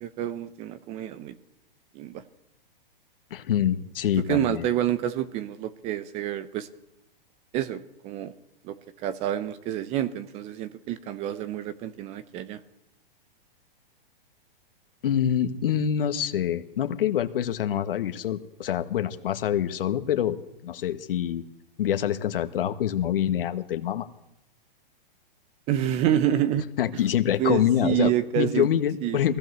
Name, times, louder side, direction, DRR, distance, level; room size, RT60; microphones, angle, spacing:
voice 1, 0.0-1.4 1.9-2.2 4.3-6.7 7.5-8.3 8.6-8.8 9.0-12.6 25.7-26.7 27.4-28.7 29.0-29.2, right 11 dB, 20° right, 15 dB, 0.7 m, -28 dB
voice 2, 3.3-4.7 15.0-20.4 20.6-21.4 21.8-24.1 26.8-29.4, left 10 dB, 70° left, 10 dB, 1.6 m, -26 dB
21.0 x 15.5 x 8.1 m, 0.87 s
hypercardioid pair, 155°, 29 cm